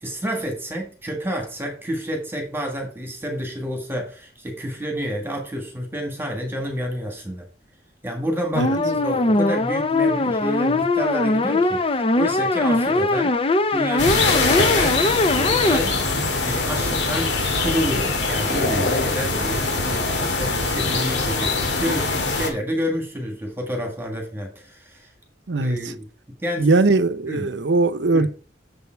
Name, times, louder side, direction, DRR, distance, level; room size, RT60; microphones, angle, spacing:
voice 1, 0.0-7.5 8.0-11.8 12.1-13.3 13.7-15.0 15.3-16.0 16.4-25.1 25.6-26.1 26.4-26.7 27.2-27.5 28.1-28.3, equal, 15° right, 1.7 m, -29 dB
sound 1, 8.5-15.8, left 2 dB, 30° left, 0.6 m, -21 dB
sound 2, 14.0-22.5, left 3 dB, 80° left, 2.1 m, -23 dB
voice 2, 25.5-25.8 26.6-28.3, right 3 dB, 85° right, 0.7 m, -20 dB
7.1 x 7.0 x 4.5 m
head